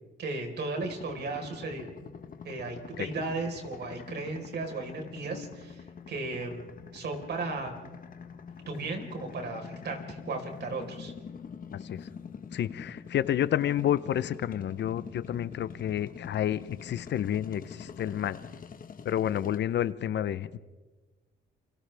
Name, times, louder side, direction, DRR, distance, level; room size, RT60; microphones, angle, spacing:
voice 1, 0.2-1.9 2.4-7.7 8.7-11.1, right 3 dB, 55° right, 3 dB, 4.4 m, -35 dB
sound 1, 0.8-19.6, left 6 dB, 45° left, 1.5 m, -45 dB
voice 2, 12.5-18.4 19.0-20.6, left 11 dB, 60° left, 16 dB, 0.7 m, -29 dB
29.0 x 26.0 x 3.5 m, 1.3 s
cardioid pair, 90°, 20 cm